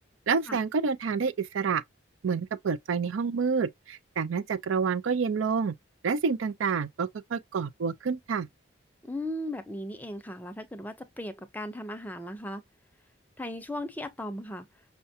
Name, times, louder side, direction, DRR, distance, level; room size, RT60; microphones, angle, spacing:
voice 1, 0.3-1.8 2.2-5.7 6.0-8.5, right 5 dB, 90° right, 0.5 m, -28 dB
voice 2, 9.0-12.6 13.4-14.7, left 1 dB, 10° left, 0.5 m, -37 dB
5.6 x 2.2 x 2.7 m
head